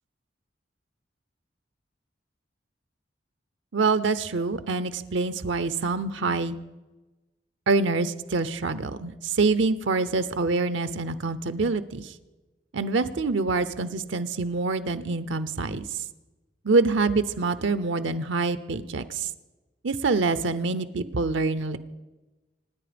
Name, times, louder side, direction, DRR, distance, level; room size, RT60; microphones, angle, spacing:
voice 1, 3.7-6.6 7.7-12.1 12.7-15.8 16.6-19.3 19.8-21.8, right 3 dB, 85° right, 13 dB, 0.7 m, -25 dB
25.5 x 10.0 x 5.2 m, 1.1 s
head